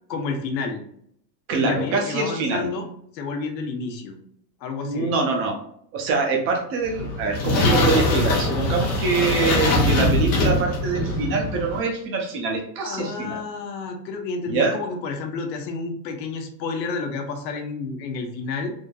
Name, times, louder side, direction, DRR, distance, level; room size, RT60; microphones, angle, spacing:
voice 1, 0.1-0.8 1.6-2.9 3.1-4.2 4.6-5.2 12.8-18.7, left 4 dB, 80° left, 4 dB, 1.0 m, -30 dB
voice 2, 1.5-2.7 4.8-5.6 5.9-13.4 14.5-14.8, right 4 dB, 25° right, 2 dB, 0.6 m, -24 dB
sound 1, 6.8-11.8, left 2 dB, 20° left, 0.3 m, -22 dB
3.6 x 2.6 x 2.2 m, 0.68 s
supercardioid pair, 145°, 50 cm